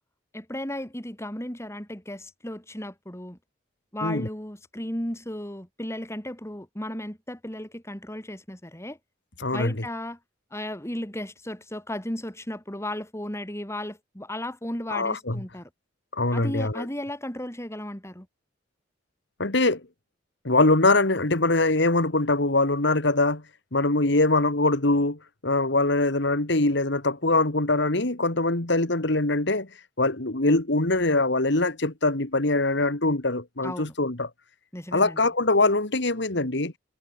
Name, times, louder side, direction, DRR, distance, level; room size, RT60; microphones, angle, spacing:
voice 1, 0.3-3.4 3.9-9.0 9.5-10.2 10.5-15.7 16.3-18.3 33.6-33.9 34.7-35.2, left 1 dB, 15° left, 4.7 m, -35 dB
voice 2, 9.4-9.7 14.9-15.4 16.1-16.9 19.4-19.8 20.4-23.4 23.7-29.7 30.0-34.3 34.9-36.7, left 2 dB, 65° left, 2.2 m, -23 dB
head